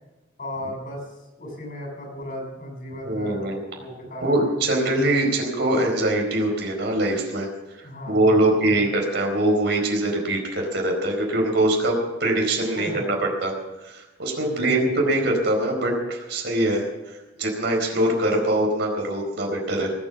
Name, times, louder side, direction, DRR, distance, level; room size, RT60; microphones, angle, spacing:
voice 1, 0.4-1.1 1.4-4.6 7.8-9.0 12.8-13.2 14.4-14.9, equal, 45° left, 0 dB, 7.0 m, -35 dB
voice 2, 3.0-3.6 4.2-7.5 7.8-13.2 13.4-13.5 13.8-19.9, right 1 dB, 60° right, 1 dB, 4.4 m, -23 dB
20.0 x 9.4 x 7.3 m, 1.1 s
head